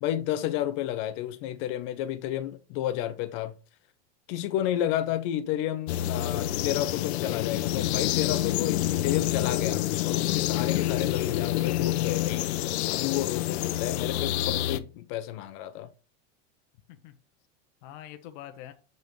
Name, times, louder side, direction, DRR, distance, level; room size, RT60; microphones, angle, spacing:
voice 1, 0.0-3.5 4.3-12.5 12.9-15.9, left 12 dB, 30° left, 0.4 m, -31 dB
sound 1, 5.9-14.8, left 14 dB, 85° left, 0.6 m, -27 dB
voice 2, 10.9-11.3 16.9-17.1 17.8-18.7, left 11 dB, 45° left, 0.8 m, -46 dB
6.5 x 5.3 x 3.0 m
supercardioid pair, 180°, 32 cm